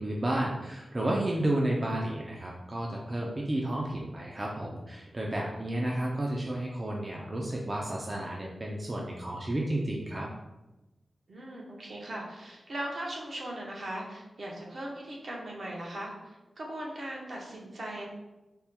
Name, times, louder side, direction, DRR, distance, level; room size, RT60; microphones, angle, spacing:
voice 1, 0.0-10.3, right 1 dB, 25° right, -2 dB, 0.4 m, -32 dB
voice 2, 5.4-5.8 11.3-18.0, right 1 dB, 60° right, -3 dB, 0.9 m, -39 dB
3.4 x 2.2 x 4.3 m, 1.0 s
wide cardioid pair, 155°, 0 cm